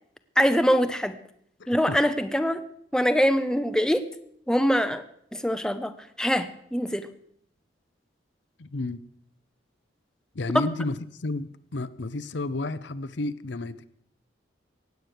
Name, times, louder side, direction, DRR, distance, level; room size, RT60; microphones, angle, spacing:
voice 1, 0.4-1.2 1.7-2.6 2.9-4.0 4.5-5.0 5.3-7.1, equal, 5° left, 9 dB, 0.6 m, -23 dB
voice 2, 8.6-9.0 10.3-13.9, left 2 dB, 70° left, 14 dB, 0.7 m, -31 dB
16.0 x 9.4 x 6.7 m, 0.68 s
head